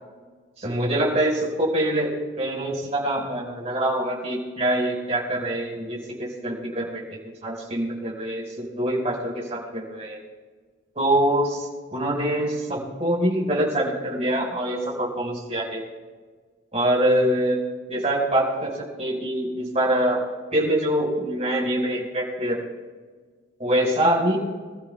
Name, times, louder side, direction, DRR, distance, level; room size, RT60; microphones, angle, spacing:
voice 1, 0.6-2.1 2.4-7.0 7.4-10.2 10.9-15.8 16.7-17.6 17.9-20.2 20.5-22.6 23.6-24.4, right 1 dB, 35° right, -3 dB, 4.8 m, -24 dB
26.5 x 14.0 x 2.3 m, 1.5 s
head